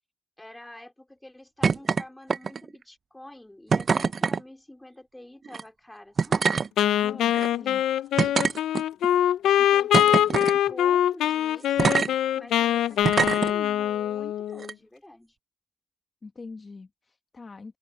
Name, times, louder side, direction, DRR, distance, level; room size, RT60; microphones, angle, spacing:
voice 1, 0.4-6.6 9.6-12.0 12.4-15.4, left 1 dB, 10° left, 4.1 m, -46 dB
sound 1, 1.6-2.0 2.3-2.7 3.7-4.4 5.5-5.6 6.2-6.7 7.3-7.5 8.2-9.1 9.9-10.6 11.8-12.1 13.0-13.5 14.6-14.7, right 5 dB, 50° right, 0.5 m, -24 dB
Wind instrument woodwind instrument, 6.8-14.7, left 11 dB, 90° left, 0.4 m, -23 dB
voice 2, 6.8-7.8 16.2-17.8, left 4 dB, 35° left, 1.1 m, -43 dB
sound 2, 7.9-12.9, right 9 dB, 75° right, 6.8 m, -62 dB
open air
cardioid pair, 80°, 0 cm